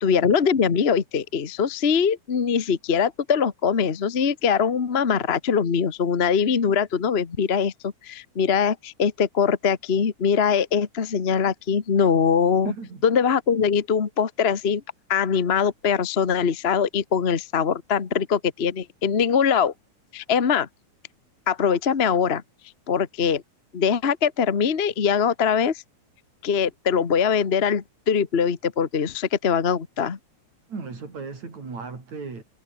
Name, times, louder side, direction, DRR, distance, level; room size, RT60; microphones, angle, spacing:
voice 1, 0.0-12.7 13.0-14.8 15.1-19.7 20.1-20.7 21.5-22.4 22.9-23.4 23.7-25.8 26.4-30.2, left 6 dB, 50° left, 0.7 m, -22 dB
voice 2, 12.6-13.0 30.7-32.4, right 4 dB, 65° right, 6.7 m, -35 dB
omnidirectional pair, 3.4 m